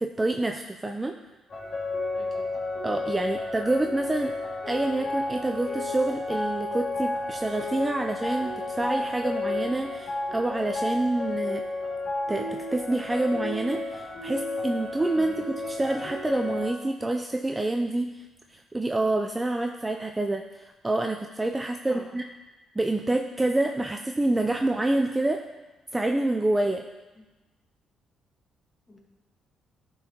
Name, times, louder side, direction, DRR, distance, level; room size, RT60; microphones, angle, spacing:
voice 1, 0.0-1.1 2.8-4.3 4.7-11.6 12.3-18.2 18.5-22.2 22.8-25.4 25.9-26.8, right 2 dB, 15° right, 4 dB, 0.3 m, -27 dB
sound 1, 1.5-16.7, left 2 dB, 50° left, 2.0 m, -32 dB
voice 2, 2.1-2.5 15.1-15.5 21.8-22.1 27.1-27.3 28.9-29.0, left 1 dB, 15° left, 0 dB, 1.3 m, -47 dB
10.5 x 4.5 x 2.8 m, 1.2 s
cardioid pair, 90°, 0 cm